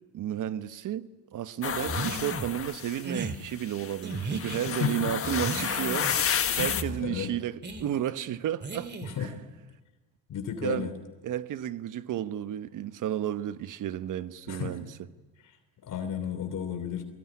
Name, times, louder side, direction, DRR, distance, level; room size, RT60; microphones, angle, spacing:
voice 1, 0.1-8.9 9.2-9.3 10.6-10.9 11.2-14.9, right 11 dB, 55° right, 1.2 m, -32 dB
sound 1, 1.6-3.0 3.6-6.8, left 8 dB, 35° left, 1.4 m, -31 dB
sound 2, 1.8-2.5 3.0-3.4 4.0-4.6 5.2-6.2 6.6-7.0 7.6-7.9 8.6-9.2, right 3 dB, 25° right, 2.5 m, -36 dB
voice 2, 4.6-5.1 6.6-7.3 9.0-9.4 10.3-10.9 14.5-14.8 15.8-17.0, left 8 dB, 55° left, 3.1 m, -33 dB
23.5 x 21.5 x 9.8 m
supercardioid pair, 90°, 38 cm